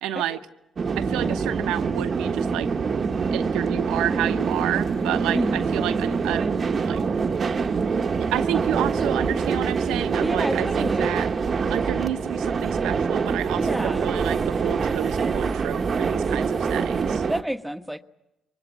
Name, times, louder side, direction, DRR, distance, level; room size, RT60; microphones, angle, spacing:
voice 1, 0.0-0.4 1.0-2.7 3.3-6.5 6.8-7.0 8.1-11.3 11.7-17.2, right 12 dB, 85° right, 9 dB, 1.1 m, -30 dB
sound 1, 0.8-17.4, right 5 dB, 50° right, 1.1 m, -25 dB
voice 2, 1.1-1.5 5.3-5.6 10.2-11.3 13.5-14.2 17.3-18.0, equal, 5° right, 8 dB, 1.4 m, -30 dB
24.0 x 20.5 x 8.4 m, 0.93 s
supercardioid pair, 60°, 0 cm